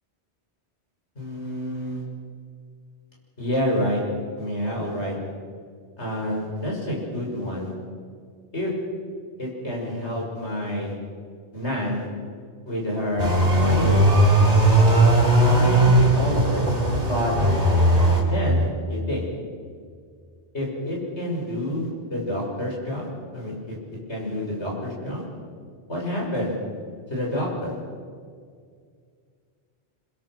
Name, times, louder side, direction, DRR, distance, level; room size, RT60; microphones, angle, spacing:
voice 1, 1.1-2.0 3.4-4.0 4.4-5.1 6.0-7.7 8.5-8.7 9.4-10.9 11.5-12.1 12.6-14.1 15.4-16.7 17.0-17.3 18.3-19.2 20.5-23.7 24.1-25.2 25.9-26.5 27.1-27.7, equal, 80° left, -2 dB, 6.7 m, -28 dB
sound 1, 13.2-18.2, right 1 dB, 35° right, 3.9 m, -18 dB
26.5 x 21.5 x 6.3 m, 2.1 s
omnidirectional pair, 1.1 m